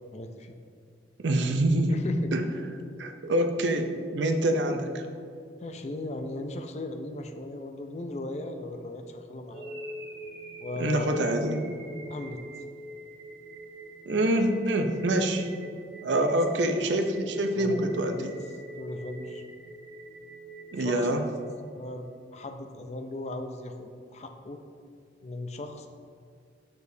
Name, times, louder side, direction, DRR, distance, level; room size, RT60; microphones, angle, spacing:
voice 1, 0.1-0.6 1.9-2.3 5.6-9.7 10.6-11.4 12.1-12.4 16.2-16.4 17.6-18.3 18.8-19.4 20.7-21.1 21.7-22.1 22.3-24.6 25.2-25.9, left 2 dB, 35° left, 6 dB, 0.4 m, -37 dB
voice 2, 1.2-2.0 2.3-2.4 3.0-5.0 10.8-11.6 14.1-15.5 16.0-18.3 20.7-21.2, right 1 dB, 70° right, 6 dB, 0.6 m, -26 dB
sound 1, 9.5-21.6, right 1 dB, 55° right, 0.9 m, -44 dB
6.8 x 6.4 x 2.7 m, 2.3 s
head